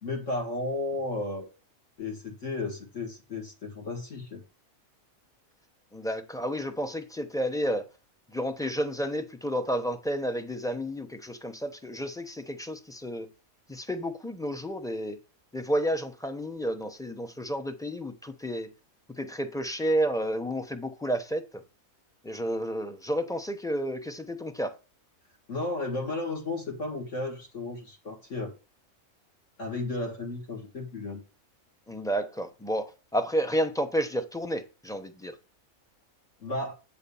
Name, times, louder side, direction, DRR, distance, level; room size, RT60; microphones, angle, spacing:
voice 1, 0.0-1.5 2.0-4.4 25.5-28.5 29.6-31.2 36.4-36.7, left 2 dB, 60° left, 2.3 m, -33 dB
voice 2, 5.9-7.9 8.3-13.3 13.7-15.2 15.5-18.7 19.2-21.6 22.2-24.7 31.9-35.3, equal, 5° left, 0.6 m, -31 dB
8.7 x 4.2 x 7.0 m
omnidirectional pair, 1.4 m